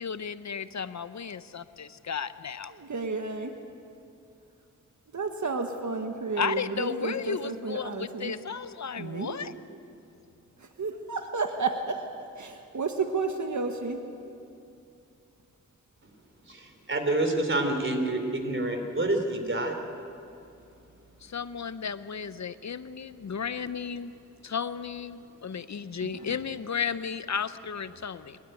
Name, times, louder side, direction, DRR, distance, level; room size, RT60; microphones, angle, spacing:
voice 1, 0.0-2.7 6.4-9.5 21.2-24.1 24.4-28.4, left 7 dB, 60° left, 13 dB, 0.7 m, -34 dB
voice 2, 2.7-3.6 5.1-8.4 9.0-9.8 10.8-12.1 12.3-14.0 26.0-26.4, right 4 dB, 65° right, 5 dB, 1.5 m, -32 dB
voice 3, 16.5-19.8, right 2 dB, 40° right, 4 dB, 3.7 m, -28 dB
27.5 x 13.0 x 9.3 m, 2.6 s
cardioid pair, 50°, 31 cm